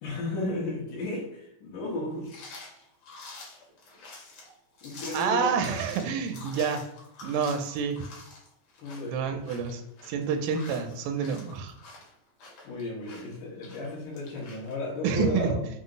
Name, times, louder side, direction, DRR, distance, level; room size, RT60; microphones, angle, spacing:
voice 1, 0.0-2.3 4.8-5.6 8.8-9.4 12.6-15.6, left 2 dB, 75° left, -7 dB, 2.4 m, -34 dB
sound 1, 2.2-14.7, left 3 dB, 60° left, 2.1 m, -47 dB
voice 2, 5.1-6.8 7.2-8.0 9.1-11.8 15.0-15.5, right 6 dB, 85° right, 5 dB, 2.2 m, -28 dB
5.6 x 2.0 x 3.8 m, 0.80 s
omnidirectional pair, 3.7 m